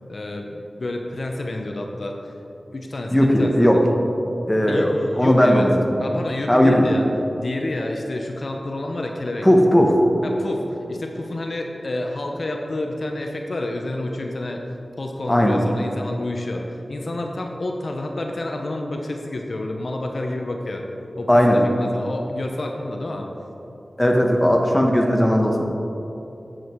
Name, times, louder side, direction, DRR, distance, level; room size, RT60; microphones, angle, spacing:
voice 1, 0.1-2.3 2.7-3.8 4.6-5.7 6.0-9.5 10.2-14.6 15.0-20.8 21.2-23.3, left 2 dB, 65° left, 2 dB, 0.8 m, -29 dB
voice 2, 3.1-3.8 4.5-5.7 6.5-6.9 9.4-9.9 15.3-15.6 21.3-21.6 24.0-25.6, equal, 10° left, 1 dB, 1.3 m, -17 dB
9.3 x 7.6 x 4.6 m, 3.0 s
cardioid pair, 50°, 0 cm